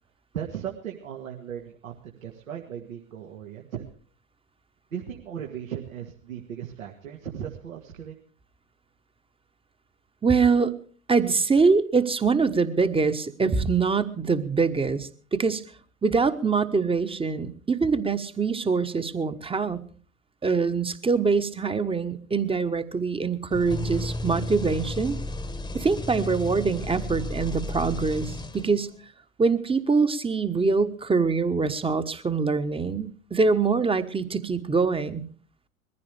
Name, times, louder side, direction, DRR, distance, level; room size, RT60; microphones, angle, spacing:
voice 1, 0.3-3.8 4.9-8.2, right 9 dB, 75° right, 0 dB, 2.1 m, -37 dB
voice 2, 10.2-10.7 11.1-15.6 16.0-19.8 20.4-25.2 25.7-28.9 29.4-35.2, right 4 dB, 15° right, 11 dB, 1.2 m, -24 dB
sound 1, 23.5-29.0, left 1 dB, 10° left, 1.3 m, -33 dB
22.0 x 15.0 x 3.4 m, 0.43 s
figure-of-eight pair, 75°, 41 cm